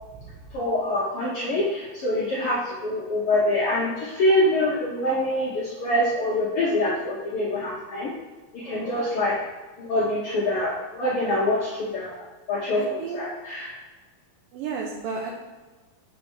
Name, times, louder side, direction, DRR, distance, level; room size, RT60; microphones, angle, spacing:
voice 1, 0.5-8.1 8.5-9.4 9.8-12.1 12.5-13.7, left 1 dB, 80° left, -5 dB, 1.2 m, -25 dB
voice 2, 12.7-13.2 14.5-15.3, right 5 dB, 80° right, -1 dB, 2.3 m, -32 dB
6.5 x 5.9 x 4.4 m, 1.2 s
omnidirectional pair, 4.2 m